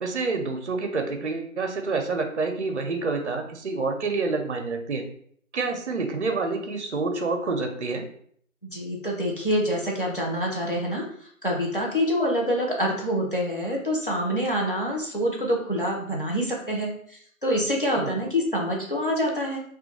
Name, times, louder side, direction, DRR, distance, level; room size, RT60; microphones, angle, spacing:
voice 1, 0.0-5.0 5.5-8.1 18.0-18.1, right 3 dB, 55° right, 5 dB, 0.5 m, -28 dB
voice 2, 8.6-11.0 11.4-19.6, equal, 40° left, -2 dB, 0.5 m, -26 dB
2.2 x 2.1 x 3.0 m, 0.63 s
figure-of-eight pair, 170°, 42 cm